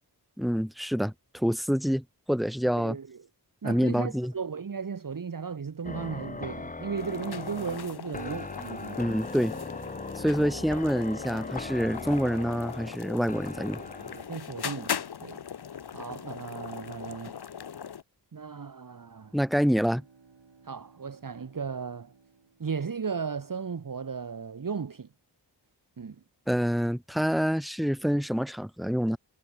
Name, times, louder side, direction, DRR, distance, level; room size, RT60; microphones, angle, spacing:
voice 1, 0.4-3.0 3.6-4.3 9.0-9.6 10.2-13.8 19.3-20.0 26.5-29.2, equal, ahead, 0.3 m, -27 dB
voice 2, 2.8-3.2 3.6-9.1 10.3-10.6 13.9-15.4 15.9-17.4 18.3-19.4 20.6-22.1 22.6-25.1 26.0-26.2, right 6 dB, 50° right, 1.1 m, -36 dB
sound 1, 5.8-14.3, left 3 dB, 20° left, 0.8 m, -39 dB
sound 2, 7.0-18.0, left 8 dB, 65° left, 0.8 m, -39 dB
Bowed string instrument, 18.8-23.4, right 5 dB, 90° right, 5.1 m, -60 dB
wide cardioid pair, 80°, 42 cm